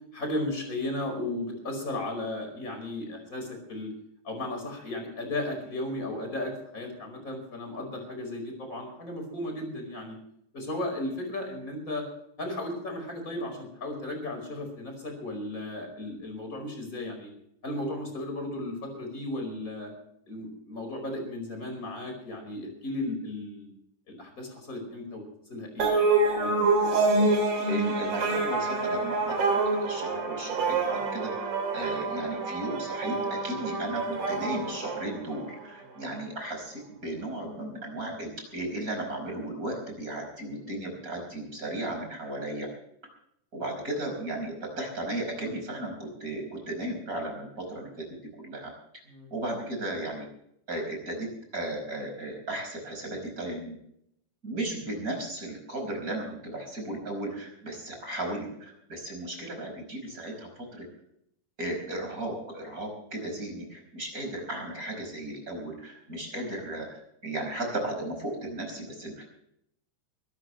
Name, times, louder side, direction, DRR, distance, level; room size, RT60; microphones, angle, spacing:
voice 1, 0.1-3.9 4.2-10.2 10.5-12.1 12.4-17.3 17.6-19.9 20.3-23.7 24.1-25.2 25.5-26.0 26.4-26.8 35.8-36.0 49.1-49.3, left 1 dB, 15° left, 4 dB, 5.0 m, -35 dB
sound 1, 25.8-35.6, right 3 dB, 45° right, 4.1 m, -27 dB
voice 2, 27.7-29.3 29.8-42.7 43.5-48.0 48.4-48.7 49.3-50.3 50.7-53.8 54.4-60.9 61.6-69.2, right 1 dB, 20° right, 2 dB, 5.0 m, -35 dB
24.0 x 13.5 x 3.2 m, 0.73 s
omnidirectional pair, 5.4 m